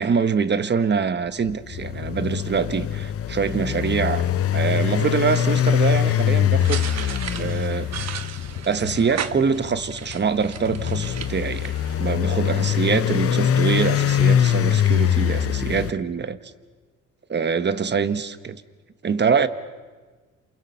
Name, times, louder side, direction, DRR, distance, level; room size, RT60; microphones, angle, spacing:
voice 1, 0.0-4.3 4.5-6.9 7.4-8.2 8.6-11.7 12.0-16.4 17.3-18.6 19.0-19.5, right 6 dB, 35° right, 1.2 m, -24 dB
sound 1, 1.4-15.9, left 10 dB, 50° left, 0.8 m, -23 dB
sound 2, 6.6-12.1, right 9 dB, 60° right, 1.2 m, -35 dB
28.0 x 28.0 x 5.7 m
cardioid pair, 90°, 30 cm